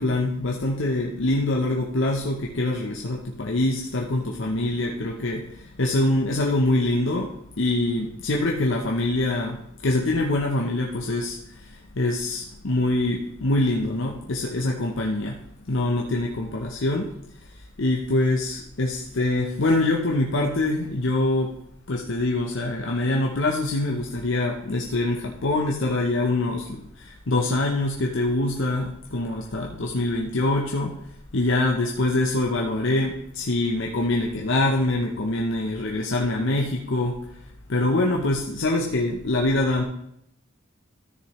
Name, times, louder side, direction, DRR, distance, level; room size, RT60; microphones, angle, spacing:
voice 1, 0.0-15.4 15.7-17.1 17.8-21.5 21.9-31.0 31.3-37.2 37.7-39.8, left 2 dB, 65° left, 0 dB, 0.8 m, -24 dB
13.5 x 6.5 x 3.1 m, 0.77 s
head